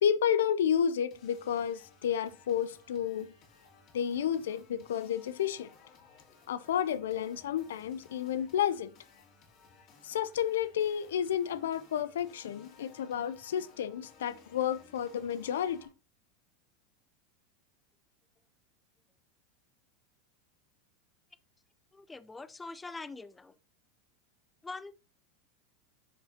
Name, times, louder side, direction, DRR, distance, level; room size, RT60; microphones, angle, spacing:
voice 1, 0.0-3.3 3.9-5.7 6.5-8.9 10.0-15.8, left 9 dB, 80° left, 0.4 m, -31 dB
sound 1, 1.1-15.9, left 5 dB, 50° left, 2.7 m, -59 dB
voice 2, 21.9-23.6 24.6-24.9, left 3 dB, 15° left, 0.4 m, -43 dB
10.0 x 5.6 x 2.8 m
hypercardioid pair, 100°, 0 cm